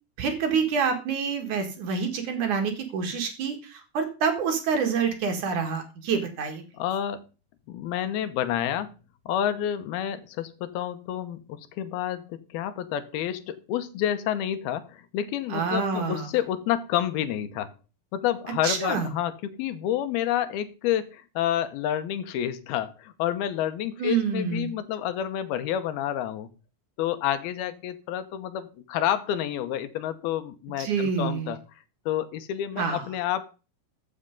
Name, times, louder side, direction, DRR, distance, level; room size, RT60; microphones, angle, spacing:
voice 1, 0.2-6.6 15.5-16.3 18.6-19.1 24.0-24.7 30.8-31.5 32.8-33.0, right 5 dB, 55° right, 5 dB, 2.9 m, -27 dB
voice 2, 6.8-7.3 7.7-9.0 9.3-17.7 18.1-26.5 27.0-31.6 32.1-33.6, left 11 dB, 80° left, 12 dB, 2.7 m, -29 dB
14.0 x 6.6 x 5.2 m, 0.33 s
omnidirectional pair, 4.6 m